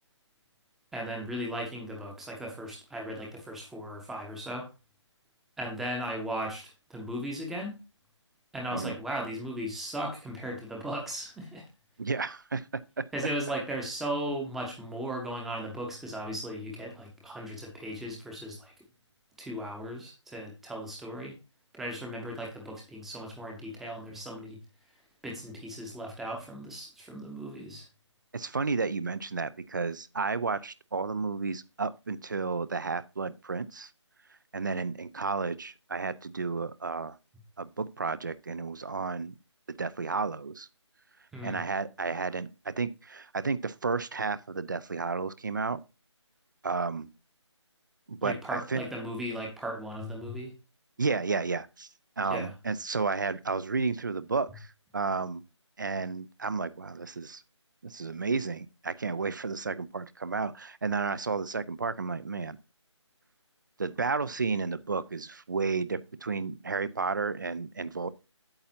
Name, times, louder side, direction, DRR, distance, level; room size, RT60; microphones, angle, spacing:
voice 1, 0.9-4.7 5.6-7.7 8.5-11.6 13.1-18.7 19.4-21.3 21.7-24.6 25.2-27.8 41.3-41.6 48.2-50.5 52.3-52.5, equal, ahead, 0.8 m, -37 dB
voice 2, 12.0-13.0 28.3-33.9 34.5-37.2 37.6-39.3 39.7-40.7 41.4-45.8 46.6-47.1 48.1-48.8 51.0-51.9 52.2-55.4 55.8-57.4 57.8-62.6 63.8-68.1, right 4 dB, 40° right, 0.5 m, -32 dB
8.8 x 7.3 x 2.8 m
figure-of-eight pair, 160°, 15 cm